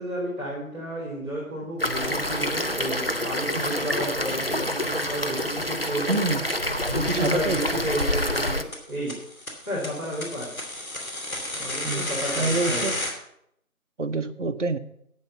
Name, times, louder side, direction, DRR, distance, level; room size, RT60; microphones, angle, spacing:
voice 1, 0.0-6.2 6.9-9.1 9.7-10.5 11.5-12.9, equal, 10° left, -16 dB, 2.7 m, -32 dB
sound 1, 1.8-8.6, left 1 dB, 40° left, 0.7 m, -27 dB
sound 2, 2.0-2.1 2.4-2.5 2.8-2.9 3.2-3.3 3.5-3.6 3.9-4.0 4.3-4.4 4.6-4.7 5.0-5.1 5.4-5.5 5.8-5.9 6.1-6.2 6.5-6.6 6.9-7.0 7.2-7.3 7.6-7.7 8.0-8.1 8.4-8.5 8.7-13.1, left 1 dB, 70° left, 2.9 m, -32 dB
voice 2, 6.1-6.5 7.1-7.6 11.8-13.0 14.0-14.8, right 3 dB, 55° right, 8 dB, 0.8 m, -27 dB
10.5 x 8.4 x 5.7 m, 0.73 s
figure-of-eight pair, 170°, 43 cm